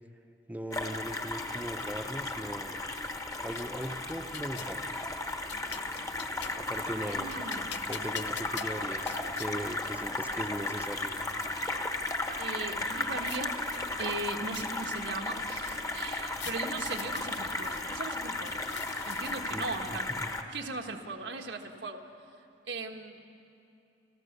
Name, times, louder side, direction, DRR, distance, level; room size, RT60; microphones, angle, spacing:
voice 1, 0.5-2.7 3.4-4.9 6.6-7.3 7.9-11.1 19.5-19.8 20.2-20.3, equal, 10° right, 8 dB, 0.7 m, -39 dB
sound 1, 0.7-20.4, left 2 dB, 20° left, 1.1 m, -35 dB
sound 2, 3.1-4.8 5.3-6.7 7.1-9.5 10.3-10.4 10.7-11.5 12.8-13.4 13.7-15.0 16.3-17.8 18.3-19.6, left 8 dB, 85° left, 0.7 m, -46 dB
voice 2, 7.2-7.7 12.4-13.6 14.0-18.6 19.1-20.1 20.5-22.0 22.7-23.2, right 3 dB, 85° right, 3 dB, 1.5 m, -38 dB
29.5 x 14.0 x 6.7 m, 2.8 s
head